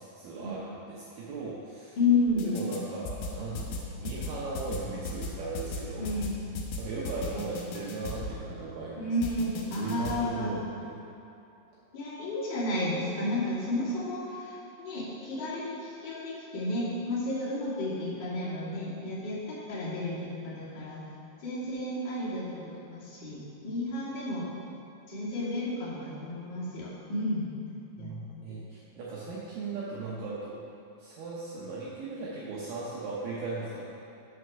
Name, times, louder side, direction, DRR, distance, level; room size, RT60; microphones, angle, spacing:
voice 1, 0.0-2.0 2.5-6.1 6.8-9.1 9.5-11.0 28.0-30.6 31.0-33.8, right 3 dB, 75° right, -6 dB, 2.1 m, -38 dB
voice 2, 2.0-2.5 6.0-6.3 9.0-10.6 11.9-21.0 21.4-24.5 25.1-27.5 28.0-28.2 28.5-28.6, left 2 dB, 40° left, -9 dB, 2.0 m, -32 dB
sound 1, 2.3-2.8 3.1-8.4 9.2-10.2, left 3 dB, 75° left, 2.0 m, -36 dB
6.4 x 6.1 x 5.9 m, 2.8 s
omnidirectional pair, 4.7 m